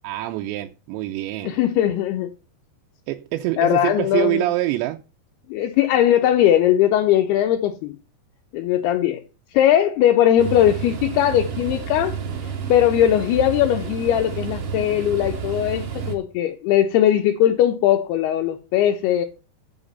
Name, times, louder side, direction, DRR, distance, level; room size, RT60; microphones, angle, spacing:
voice 1, 0.0-1.6 3.1-5.0, right 15 dB, 85° right, 2.9 m, -25 dB
voice 2, 1.4-2.3 3.6-4.4 5.5-8.0 8.5-9.2 9.5-12.2 12.4-19.3, left 11 dB, 75° left, 2.6 m, -19 dB
sound 1, 10.4-16.1, right 7 dB, 50° right, 2.0 m, -30 dB
8.8 x 7.2 x 5.4 m
omnidirectional pair, 5.0 m